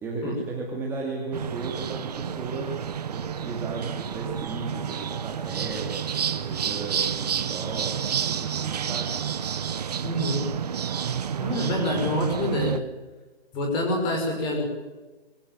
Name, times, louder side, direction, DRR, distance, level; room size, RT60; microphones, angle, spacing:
voice 1, 0.0-2.8 3.1-9.2, right 3 dB, 10° right, -2 dB, 2.3 m, -35 dB
sound 1, 1.3-12.8, right 8 dB, 40° right, 1.1 m, -30 dB
voice 2, 10.0-10.5 11.4-12.8 13.5-14.6, left 1 dB, 15° left, 2 dB, 5.4 m, -26 dB
22.5 x 16.0 x 9.6 m, 1.2 s
hypercardioid pair, 160°, 31 cm